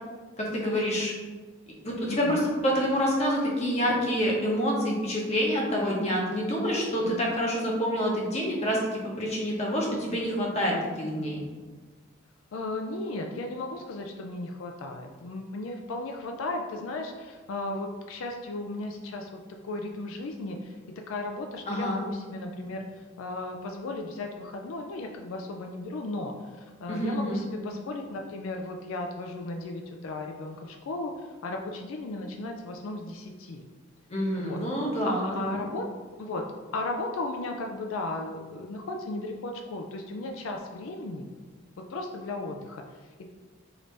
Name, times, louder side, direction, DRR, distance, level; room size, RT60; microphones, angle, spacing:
voice 1, 0.4-1.1 1.8-11.4 21.7-22.0 26.9-27.4 34.1-35.6, equal, 30° left, -3 dB, 0.8 m, -27 dB
voice 2, 2.1-2.4 7.0-7.2 12.5-20.8 21.1-22.8 23.2-33.6 34.4-34.6 35.2-35.9 36.2-36.4 36.7-41.3 41.9-43.0, left 2 dB, 80° left, 3 dB, 0.4 m, -35 dB
4.9 x 2.6 x 3.2 m, 1.4 s
head